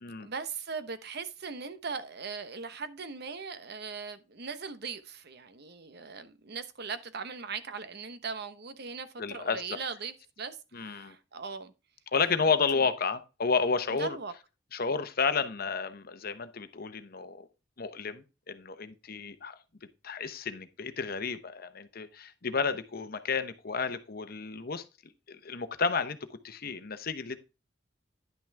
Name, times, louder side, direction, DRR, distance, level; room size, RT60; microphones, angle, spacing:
voice 1, 0.2-11.7 12.7-12.9 14.0-14.3, right 5 dB, 60° right, 1.0 m, -39 dB
voice 2, 9.2-9.8 10.7-11.2 12.1-14.2 14.7-17.5 17.8-19.6 20.0-24.8 25.3-26.2 26.4-27.4, left 5 dB, 55° left, 0.9 m, -31 dB
10.5 x 6.1 x 3.4 m
head